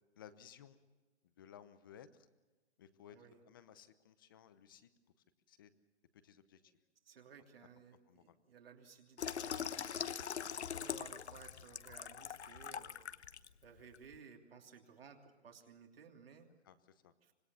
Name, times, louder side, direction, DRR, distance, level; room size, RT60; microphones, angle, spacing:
voice 1, 0.2-0.8 1.2-2.3 2.8-3.2 3.5-4.9 5.5-5.7 6.2-6.8 8.1-8.4 10.5-10.6 16.6-17.1, left 9 dB, 20° left, 13 dB, 0.8 m, -58 dB
voice 2, 3.1-3.4 6.6-6.7 7.0-13.1 13.6-16.5 17.2-17.3, right 6 dB, 55° right, 2 dB, 3.1 m, -58 dB
Water tap faucet / Sink (filling or washing), 9.2-13.5 13.9-14.1, left 7 dB, 70° left, 1.1 m, -42 dB
26.0 x 21.0 x 7.0 m, 1.2 s
hypercardioid pair, 165°, 34 cm